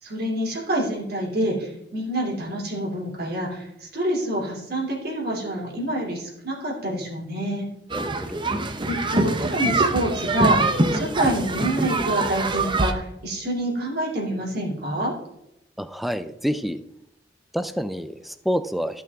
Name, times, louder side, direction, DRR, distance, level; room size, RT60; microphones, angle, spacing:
voice 1, 0.0-7.7 8.9-10.6 10.9-15.1, right 1 dB, 60° right, -2 dB, 2.9 m, -27 dB
voice 2, 7.9-8.5 15.8-16.8 17.5-19.0, equal, ahead, 11 dB, 0.4 m, -28 dB
sound 1, 7.9-12.9, right 2 dB, 25° right, 0.7 m, -24 dB
14.0 x 5.9 x 3.6 m, 0.81 s
head